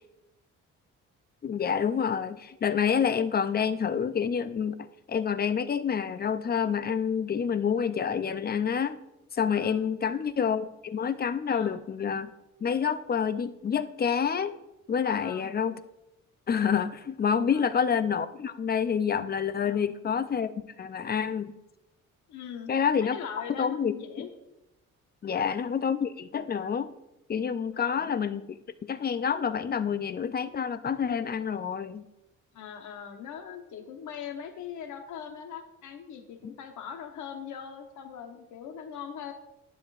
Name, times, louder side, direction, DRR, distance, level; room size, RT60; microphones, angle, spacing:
voice 1, 1.4-9.0 9.3-12.3 12.6-14.5 14.9-15.7 16.5-20.5 20.8-21.5 22.7-23.2 23.6-24.3 25.2-26.9 27.3-28.6 28.9-32.0, left 7 dB, 30° left, 13 dB, 0.5 m, -28 dB
voice 2, 9.5-9.9 11.5-11.8 15.0-15.5 17.5-17.8 19.6-19.9 22.3-22.7 23.0-24.3 25.2-25.5 27.7-28.1 32.5-39.3, left 8 dB, 75° left, 6 dB, 1.1 m, -41 dB
11.5 x 7.9 x 2.5 m, 0.92 s
cardioid pair, 90°, 30 cm